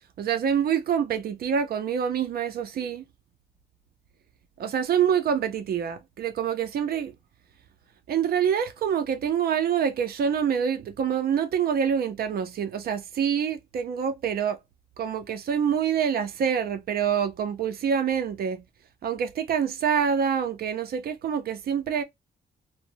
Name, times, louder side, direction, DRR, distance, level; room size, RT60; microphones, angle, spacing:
voice 1, 0.2-3.0 4.6-7.1 8.1-14.6 15.0-18.6 19.0-22.0, right 8 dB, 60° right, 0.5 m, -26 dB
2.6 x 2.0 x 2.6 m
cardioid pair, 130°, 17 cm